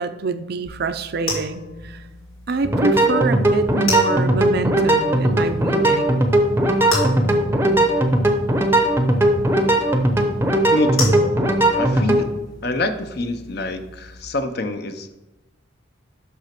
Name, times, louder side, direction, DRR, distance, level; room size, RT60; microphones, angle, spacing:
voice 1, 0.0-2.0 2.5-6.1 9.9-10.0, right 4 dB, 50° right, 10 dB, 0.5 m, -25 dB
sound 1, 0.6-14.2, left 2 dB, 85° left, 3.1 m, -33 dB
sound 2, 2.6-12.2, right 1 dB, 10° right, 0.6 m, -18 dB
voice 2, 10.7-11.2 11.7-12.3 12.6-15.2, left 1 dB, 50° left, 9 dB, 0.7 m, -26 dB
6.0 x 6.0 x 5.8 m, 1.0 s
head